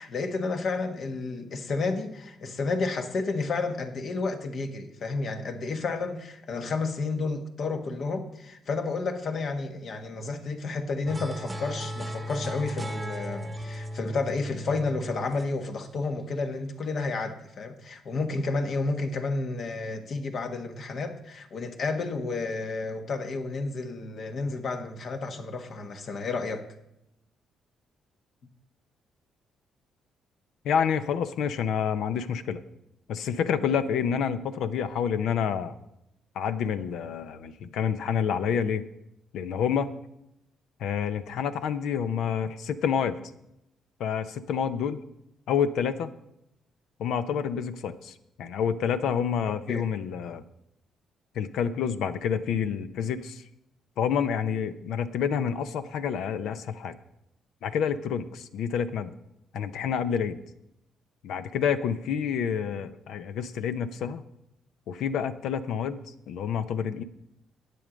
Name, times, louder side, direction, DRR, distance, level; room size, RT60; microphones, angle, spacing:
voice 1, 0.0-26.6 37.6-37.7 49.7-49.9, left 3 dB, 55° left, 6 dB, 1.4 m, -31 dB
sound 1, 11.1-16.4, equal, 15° right, 0.9 m, -36 dB
voice 2, 30.6-32.6 33.1-35.7 36.4-38.8 39.3-39.9 40.8-43.2 44.0-45.0 45.5-46.1 47.0-50.4 51.3-53.4 54.0-56.9 57.6-59.1 59.5-60.4 61.2-64.2 64.9-67.0, left 7 dB, 80° left, 12 dB, 0.7 m, -28 dB
11.0 x 8.6 x 5.1 m, 0.83 s
cardioid pair, 90°, 0 cm